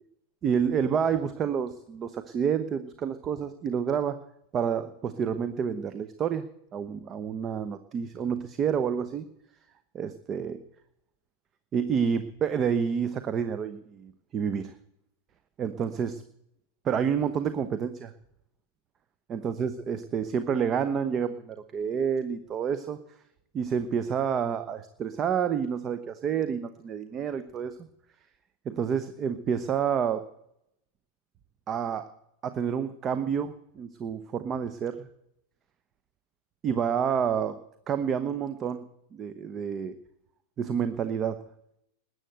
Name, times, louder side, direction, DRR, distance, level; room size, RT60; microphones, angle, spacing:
voice 1, 0.4-4.2 4.5-6.4 6.7-9.3 9.9-10.6 11.7-14.7 15.6-16.2 16.8-18.1 19.3-23.0 23.5-27.9 28.6-30.3 31.7-32.1 32.4-35.1 36.6-37.6 37.9-38.8 39.1-39.9 40.6-41.4, right 7 dB, 30° right, 12 dB, 1.0 m, -29 dB
20.0 x 8.0 x 7.9 m, 0.79 s
figure-of-eight pair, 90°, 0 cm